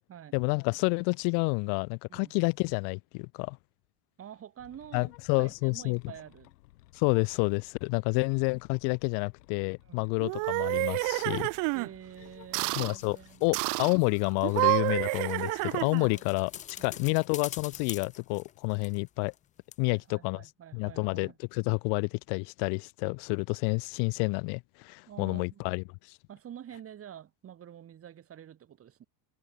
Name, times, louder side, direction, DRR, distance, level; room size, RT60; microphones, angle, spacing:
voice 1, 0.3-3.6 4.9-6.0 6.9-11.5 12.8-16.5 16.8-19.3 19.8-20.4 20.7-26.2, left 40 dB or more, 60° left, 0.6 m, -29 dB
voice 2, 4.2-5.1 5.4-6.5 9.8-10.1 11.7-13.4 15.8-15.9 16.1-16.3 16.8-17.0 19.8-21.4 25.1-25.8 26.3-29.1, right 10 dB, 30° right, 1.6 m, -48 dB
sound 1, 4.6-14.1, left 19 dB, 85° left, 6.2 m, -58 dB
sound 2, 10.2-11.9 12.5-12.9 13.5-14.0 14.4-16.2, right 28 dB, 45° right, 0.4 m, -29 dB
sound 3, 12.4-19.4 19.7-19.8, left 10 dB, 20° left, 0.3 m, -47 dB
supercardioid pair, 120°, 46 cm